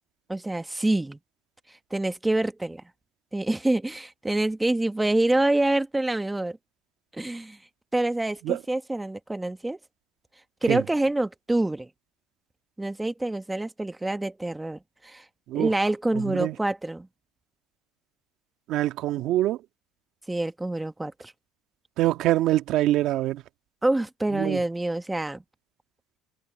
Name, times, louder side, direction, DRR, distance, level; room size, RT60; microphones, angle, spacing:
voice 1, 0.3-1.2 1.9-2.8 3.3-6.6 7.1-7.6 7.9-9.8 10.6-11.9 12.8-15.2 15.5-17.1 20.3-21.3 23.8-25.4, right 2 dB, 10° right, 1.4 m, -26 dB
voice 2, 18.7-19.6 22.0-23.4 24.3-24.6, right 14 dB, 60° right, 1.8 m, -24 dB
supercardioid pair, 110°, 0 cm